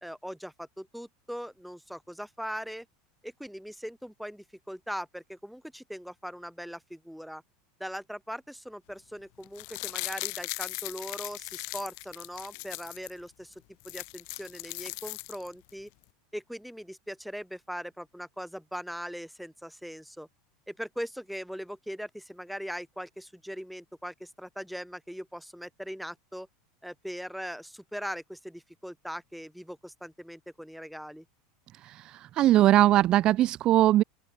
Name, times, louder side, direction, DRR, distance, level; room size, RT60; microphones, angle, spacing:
voice 1, 0.0-2.9 3.2-7.4 7.8-13.5 13.8-15.9 16.3-20.3 20.7-26.5 26.8-31.3, equal, ahead, 2.2 m, -40 dB
sound 1, 9.4-13.1 13.5-13.6 13.8-15.7 16.0-16.1, left 35 dB, 65° left, 1.1 m, -38 dB
voice 2, 31.8-34.0, right 14 dB, 40° right, 0.6 m, -21 dB
open air
supercardioid pair, 125°, 2 cm